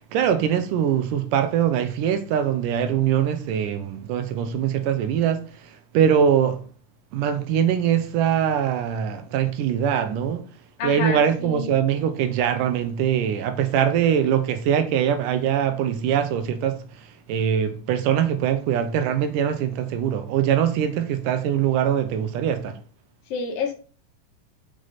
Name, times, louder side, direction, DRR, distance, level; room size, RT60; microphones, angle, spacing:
voice 1, 0.1-6.6 7.1-10.5 10.8-22.8, right 9 dB, 75° right, 2.3 m, -22 dB
voice 2, 10.8-11.7 23.3-23.7, left 4 dB, 75° left, 3.4 m, -28 dB
6.9 x 6.6 x 4.1 m
omnidirectional pair, 4.0 m